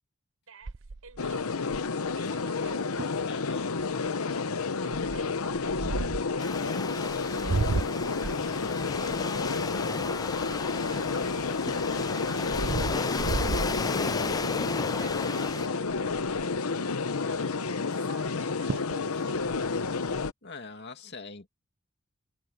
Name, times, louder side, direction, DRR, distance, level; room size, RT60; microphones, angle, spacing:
voice 1, 0.5-1.8 2.2-3.1 4.8-10.0 10.6-14.2 14.9-16.4 17.0-19.6, right 3 dB, 75° right, 7.1 m, -51 dB
sound 1, 0.7-2.1 2.7-2.8 3.0-3.3 3.8-4.1 4.9-6.4 7.1-11.0 11.4-14.5 14.9-15.2 15.5-15.6 15.9-16.6 18.3-18.4 18.7-19.0 19.3-20.3, right 3 dB, 55° right, 0.6 m, -34 dB
sound 2, 1.2-20.3, left 4 dB, 85° left, 0.9 m, -30 dB
voice 2, 3.3-3.7 20.4-21.5, left 4 dB, 50° left, 2.5 m, -43 dB
Waves surf, 6.4-15.7, left 4 dB, 20° left, 0.4 m, -34 dB
head